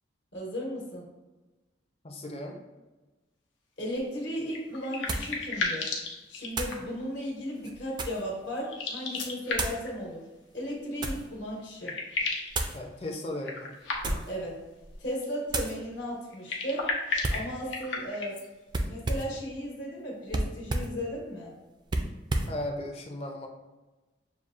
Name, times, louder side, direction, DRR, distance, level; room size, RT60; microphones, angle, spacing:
voice 1, 0.3-1.1 3.8-5.9 6.3-10.2 10.5-12.0 14.3-14.6 15.0-16.9 17.3-18.4 18.9-21.5, equal, 75° left, -3 dB, 1.3 m, -35 dB
voice 2, 2.0-2.6 12.7-13.7 22.5-23.5, left 1 dB, 30° left, 2 dB, 0.5 m, -36 dB
sound 1, 3.9-4.0 5.1-5.4 6.5-6.8 7.5-8.3 9.5-9.8 10.6-11.3 12.5-12.8 13.9-14.4 14.8-15.1 15.5-15.8 17.2-17.5 18.7-19.4 20.3-21.0 21.9-22.6, right 2 dB, 25° right, 0.3 m, -32 dB
sound 2, 4.5-7.0 8.6-9.9 11.3-11.4 11.6-12.6 13.4-14.4 16.3-18.5, left 3 dB, 90° left, 0.8 m, -34 dB
6.9 x 2.3 x 2.5 m, 1.1 s
head